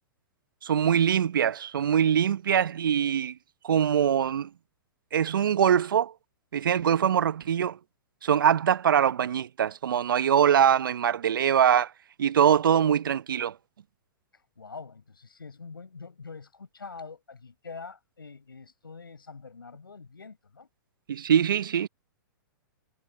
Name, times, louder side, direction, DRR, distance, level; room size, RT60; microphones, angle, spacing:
voice 1, 0.6-3.3 3.6-4.5 5.1-6.1 6.5-7.8 8.2-11.9 12.2-13.5 21.1-21.9, right 9 dB, 70° right, 1.2 m, -23 dB
voice 2, 14.3-20.7, left 4 dB, 85° left, 7.1 m, -45 dB
hypercardioid pair, 110°, 11 cm